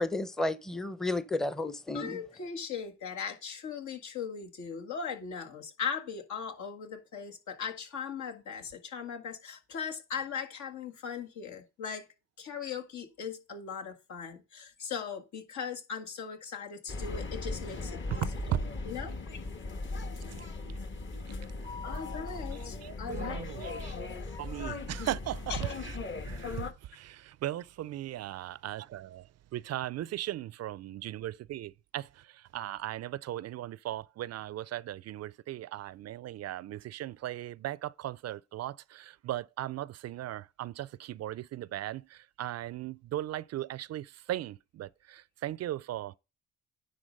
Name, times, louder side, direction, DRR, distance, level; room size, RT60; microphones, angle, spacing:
voice 1, 0.0-2.2, left 2 dB, ahead, 0.7 m, -32 dB
voice 2, 1.9-12.1 12.4-18.3 18.9-19.4 21.8-23.9 25.5-25.7, left 6 dB, 70° left, 1.8 m, -39 dB
sound 1, 16.9-26.7, left 3 dB, 40° left, 1.3 m, -38 dB
voice 3, 20.2-20.8 21.1-21.2 21.6-22.0 22.8-23.9 24.4-25.9 26.2-26.6 26.9-29.3 29.5-32.1 32.5-46.2, right 13 dB, 60° right, 0.4 m, -38 dB
10.0 x 3.9 x 5.3 m
cardioid pair, 90°, 30 cm